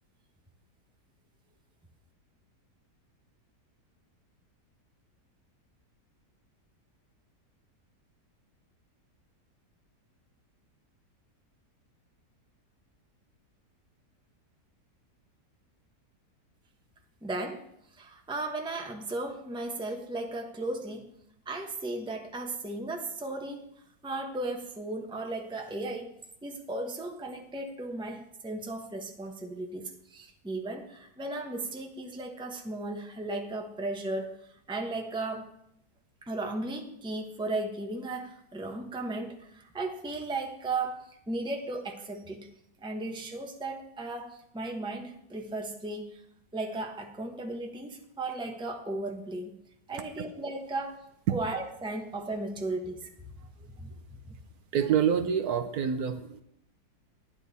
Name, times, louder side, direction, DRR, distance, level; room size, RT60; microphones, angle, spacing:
voice 1, 17.2-17.6 17.9-21.1 21.4-23.6 24.0-26.1 26.4-34.3 34.7-35.5 36.2-42.5 42.8-46.2 46.5-49.6 49.9-51.0 51.3-53.1 53.7-53.9 54.3-54.4, right 2 dB, 5° right, 2 dB, 0.8 m, -35 dB
voice 2, 54.7-56.4, right 8 dB, 70° right, 9 dB, 1.2 m, -26 dB
10.5 x 10.5 x 4.1 m, 0.75 s
omnidirectional pair, 1.8 m